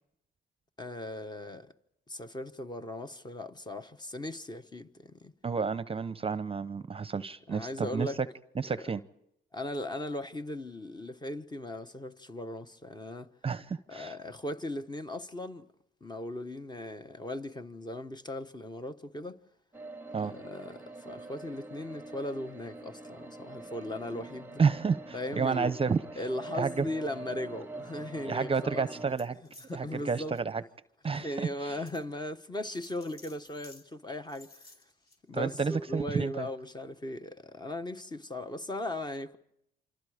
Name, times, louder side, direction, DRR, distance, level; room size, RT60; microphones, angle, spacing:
voice 1, 0.8-1.7 2.1-5.3 7.5-8.2 8.7-8.9 9.5-13.3 13.9-15.7 16.0-19.4 20.2-24.6 25.1-25.7 26.1-28.9 29.7-30.4 31.1-34.7 35.3-39.4, left 1 dB, 20° left, 1.3 m, -38 dB
voice 2, 5.4-8.1 8.6-9.0 13.4-14.1 20.1-20.3 24.6-26.0 26.5-26.8 28.2-29.4 29.7-30.6 31.0-31.8 35.3-36.5, right 5 dB, 30° right, 0.8 m, -30 dB
sound 1, 19.7-29.1, right 2 dB, 10° right, 1.1 m, -44 dB
sound 2, 29.1-29.7 30.2-30.4 31.0-31.1 31.9-32.0 32.7-33.8 34.3-35.2, left 2 dB, 50° left, 4.6 m, -55 dB
28.0 x 25.5 x 5.1 m
cardioid pair, 90°, 20 cm